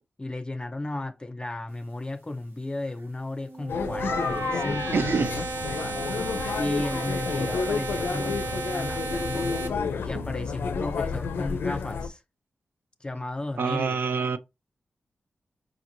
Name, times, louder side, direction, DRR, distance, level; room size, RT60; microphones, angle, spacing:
voice 1, 0.2-5.5 6.5-9.5 10.0-12.2 13.0-14.0, left 2 dB, 25° left, 0.4 m, -34 dB
sound 1, 3.2-9.7, right 3 dB, 90° right, 1.0 m, -33 dB
sound 2, 3.7-12.1, left 5 dB, 90° left, 0.4 m, -30 dB
voice 2, 4.9-5.3 10.1-10.2 13.6-14.4, right 5 dB, 70° right, 0.4 m, -26 dB
4.9 x 2.9 x 2.6 m
cardioid pair, 60°, 4 cm